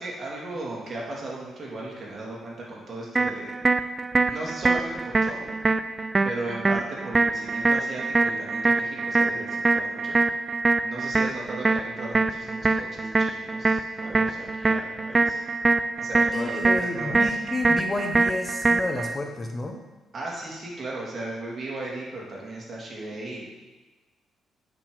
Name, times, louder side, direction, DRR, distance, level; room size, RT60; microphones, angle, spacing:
voice 1, 0.0-3.6 4.3-5.4 6.2-10.2 10.8-15.4 16.0-17.4 20.1-23.5, right 2 dB, 45° right, -4 dB, 3.1 m, -36 dB
sound 1, 3.2-19.2, right 3 dB, 25° right, 0.4 m, -24 dB
voice 2, 16.3-19.8, left 2 dB, 25° left, 4 dB, 0.9 m, -30 dB
8.7 x 6.2 x 5.1 m, 1.2 s
cardioid pair, 90°, 0 cm